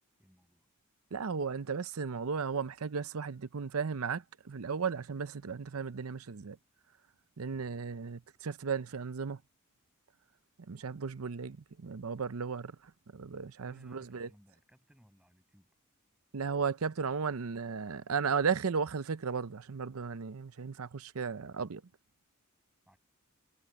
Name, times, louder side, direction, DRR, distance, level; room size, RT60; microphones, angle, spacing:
voice 1, 0.2-0.7 13.6-15.7 22.9-23.0, equal, 5° right, 6.7 m, -62 dB
voice 2, 1.1-6.6 7.4-9.4 10.7-12.7 13.1-14.3 16.3-21.8, right 5 dB, 75° right, 0.6 m, -35 dB
head